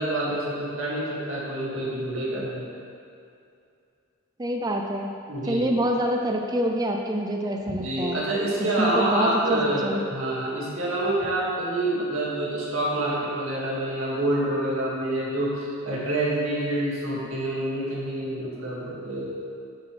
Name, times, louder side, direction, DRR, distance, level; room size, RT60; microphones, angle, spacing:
voice 1, 0.0-2.6 5.3-5.8 7.8-19.4, right 1 dB, 75° right, -6 dB, 2.2 m, -27 dB
voice 2, 4.4-5.2 5.5-8.2 8.6-10.0, right 1 dB, 20° right, 2 dB, 0.4 m, -26 dB
10.0 x 8.0 x 3.4 m, 2.5 s
head